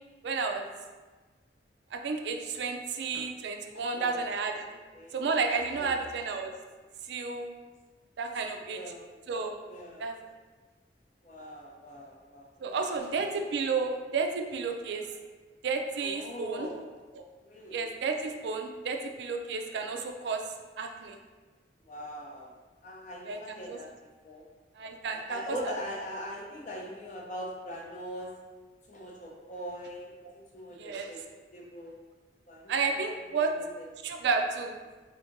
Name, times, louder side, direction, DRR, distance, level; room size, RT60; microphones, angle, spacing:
voice 1, 0.2-0.6 1.9-4.6 5.1-6.5 7.1-7.5 8.2-8.8 9.3-9.5 10.0-10.1 12.6-15.0 15.6-16.7 17.7-20.4 20.8-21.2 23.3-23.8 24.8-25.7 30.8-31.1 32.7-33.5 34.0-34.8, right 4 dB, 70° right, 4 dB, 0.3 m, -31 dB
voice 2, 3.7-4.2 4.6-5.3 5.8-6.0 8.5-9.1 9.7-10.0 11.2-13.0 16.0-16.8 17.4-18.0 21.9-22.5 22.8-23.9 24.2-24.4 25.1-28.3 28.9-31.2 31.5-32.0 32.5-33.0 33.3-33.7 34.1-34.3, equal, 40° left, -2 dB, 0.6 m, -42 dB
3.5 x 2.8 x 2.5 m, 1.3 s
head